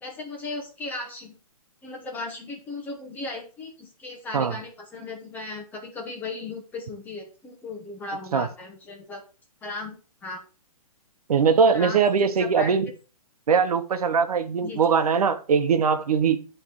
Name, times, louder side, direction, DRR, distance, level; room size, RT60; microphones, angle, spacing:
voice 1, 0.0-1.4 1.8-9.2 9.6-10.0 10.2-10.4 11.7-12.7 14.6-14.8, left 3 dB, 10° left, 0.9 m, -36 dB
voice 2, 11.3-12.9 13.5-16.5, right 6 dB, 75° right, 1.0 m, -21 dB
9.8 x 3.4 x 4.5 m
hypercardioid pair, 160°, 19 cm